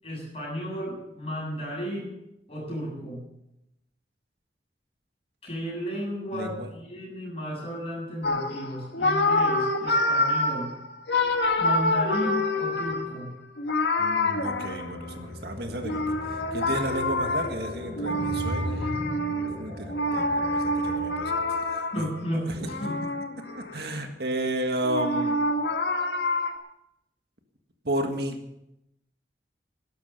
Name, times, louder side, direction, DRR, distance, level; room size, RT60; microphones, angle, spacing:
voice 1, 0.0-2.1 2.5-3.2 5.4-10.7 11.6-13.3 18.7-19.0 21.9-23.0, equal, 35° left, -3 dB, 7.4 m, -33 dB
voice 2, 6.3-6.7 14.0-16.0 16.5-18.9 19.6-21.3 21.7-22.0 22.5-22.6 23.7-25.4 27.9-28.4, right 1 dB, 65° right, 5 dB, 1.7 m, -32 dB
sound 1, 8.2-15.2 15.8-22.2 22.6-23.8 24.2-26.5, left 2 dB, 85° left, 1.7 m, -27 dB
sound 2, 14.4-21.8, left 1 dB, 15° right, 4.2 m, -38 dB
13.0 x 11.5 x 6.8 m, 0.85 s
head